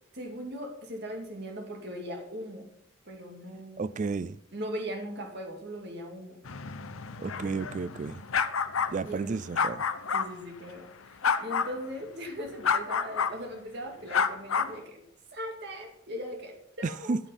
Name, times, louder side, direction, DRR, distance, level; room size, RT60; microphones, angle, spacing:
voice 1, 0.1-2.7 3.1-4.1 4.5-6.4 9.0-9.4 10.1-15.0 15.3-17.2, equal, 55° right, 2.2 m, -39 dB
voice 2, 3.8-4.4 7.2-8.2 8.9-9.8 16.8-17.2, right 4 dB, 40° right, 0.3 m, -32 dB
sound 1, 6.5-10.3 11.2-11.8 12.6-13.3 14.1-14.8, left 6 dB, 85° left, 0.8 m, -29 dB
13.5 x 7.2 x 5.6 m
head